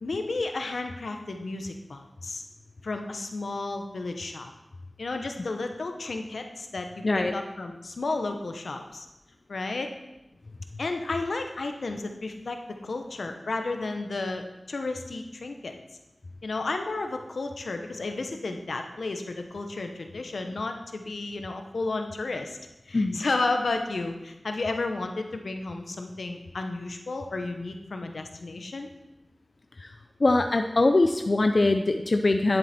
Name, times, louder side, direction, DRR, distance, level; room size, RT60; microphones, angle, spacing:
voice 1, 0.0-2.4 2.8-4.5 5.0-6.9 7.1-9.1 9.5-9.9 10.8-12.6 12.8-15.7 16.4-22.6 22.9-28.9, left 3 dB, 85° left, 5 dB, 0.9 m, -32 dB
voice 2, 7.0-7.3 22.9-23.2 29.8-29.9 30.2-32.6, left 2 dB, 60° left, 6 dB, 0.5 m, -22 dB
10.5 x 7.8 x 4.3 m, 0.98 s
wide cardioid pair, 50°, 0 cm